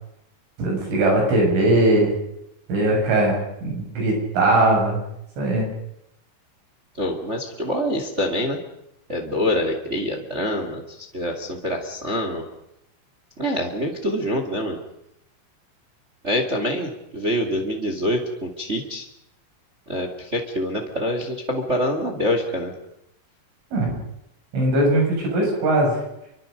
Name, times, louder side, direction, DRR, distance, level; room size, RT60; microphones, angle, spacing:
voice 1, 0.6-2.1 2.7-5.0 5.4-5.7 23.7-23.9 24.5-25.9, right 2 dB, 70° right, 0 dB, 9.6 m, -20 dB
voice 2, 7.0-8.6 9.1-12.4 13.4-14.8 16.2-19.0 19.9-22.7, equal, 30° right, 4 dB, 1.2 m, -25 dB
28.5 x 24.5 x 5.3 m, 0.82 s
omnidirectional pair, 5.7 m